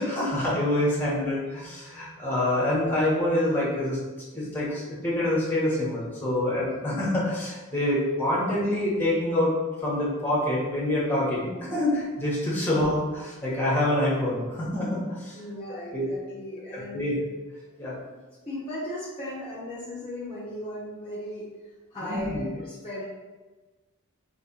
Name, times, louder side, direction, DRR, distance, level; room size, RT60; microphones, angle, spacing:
voice 1, 0.0-4.0 4.3-9.6 9.8-15.4 15.9-16.1 16.7-17.1 17.8-18.0 22.0-22.4, left 1 dB, 10° left, -6 dB, 1.2 m, -26 dB
voice 2, 0.8-1.2 15.3-17.2 18.1-18.2 18.4-21.5 21.9-23.0, left 1 dB, 25° left, -9 dB, 0.9 m, -37 dB
3.4 x 3.2 x 4.2 m, 1.2 s
head